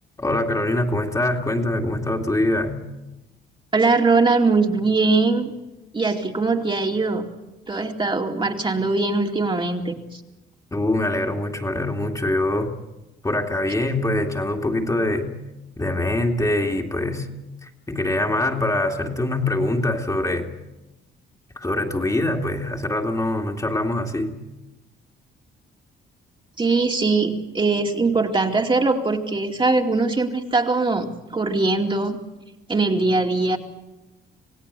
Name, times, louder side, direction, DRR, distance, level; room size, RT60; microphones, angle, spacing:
voice 1, 0.2-2.8 10.7-12.7 13.2-15.3 15.8-17.3 17.6-20.5 21.6-24.4, left 1 dB, 15° left, 2 dB, 2.4 m, -24 dB
voice 2, 3.7-5.5 5.9-7.2 7.7-10.2 26.6-31.1 31.3-32.2 32.7-33.6, right 3 dB, 25° right, 2 dB, 2.5 m, -21 dB
27.0 x 17.0 x 8.3 m, 1.0 s
cardioid pair, 90°, 20 cm